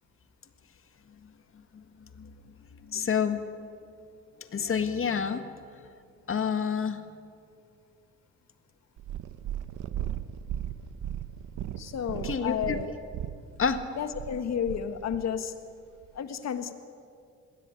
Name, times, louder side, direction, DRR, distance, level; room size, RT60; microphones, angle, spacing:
voice 1, 2.8-3.7 4.5-5.5 6.3-7.0 12.2-12.8 13.6-13.8, left 6 dB, 45° left, 9 dB, 1.8 m, -28 dB
Purr, 9.0-15.3 16.0-16.1, right 11 dB, 80° right, 1.0 m, -36 dB
voice 2, 11.8-12.9 14.0-15.5 16.1-16.7, left 8 dB, 60° left, 9 dB, 1.7 m, -32 dB
20.5 x 17.0 x 9.6 m, 2.4 s
cardioid pair, 90°, 30 cm